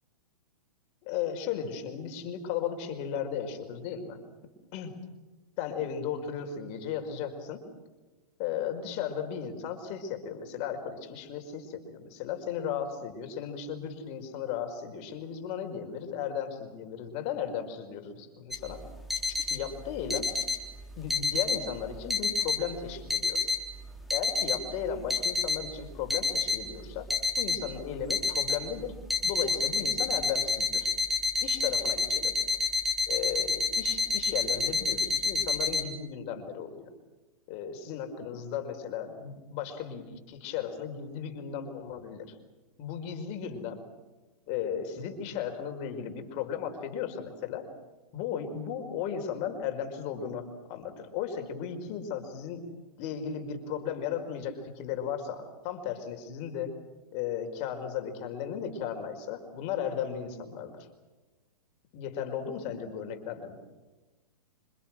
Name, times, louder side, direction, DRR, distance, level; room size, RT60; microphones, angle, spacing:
voice 1, 1.0-4.2 4.7-4.9 5.6-7.6 8.4-18.8 19.3-20.3 21.0-23.4 24.1-27.1 27.4-28.9 29.2-30.9 31.4-32.3 33.1-36.9 37.5-42.4 42.8-43.8 44.5-47.7 48.1-52.7 53.0-56.7 57.1-60.7 61.9-63.6, left 8 dB, 35° left, 5 dB, 5.0 m, -35 dB
sound 1, 18.5-35.8, left 4 dB, ahead, 3.7 m, -29 dB
27.5 x 26.0 x 6.2 m, 1.2 s
hypercardioid pair, 135°, 19 cm